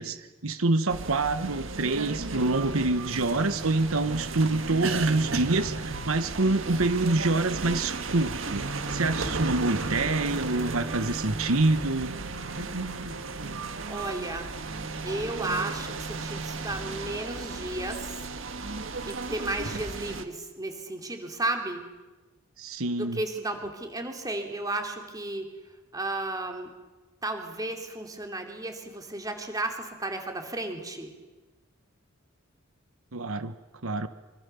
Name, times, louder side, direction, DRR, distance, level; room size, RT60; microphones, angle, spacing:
voice 1, 0.0-12.1 22.6-23.2 33.1-33.5 33.8-34.1, right 2 dB, 85° right, 11 dB, 1.2 m, -26 dB
sound 1, 0.9-20.2, right 3 dB, 65° right, 1.8 m, -34 dB
voice 2, 13.8-14.5 15.0-18.2 19.1-21.8 23.0-25.5 25.9-26.7 27.2-31.1, right 2 dB, 20° right, 4 dB, 3.2 m, -33 dB
25.5 x 25.0 x 7.0 m, 1.2 s
head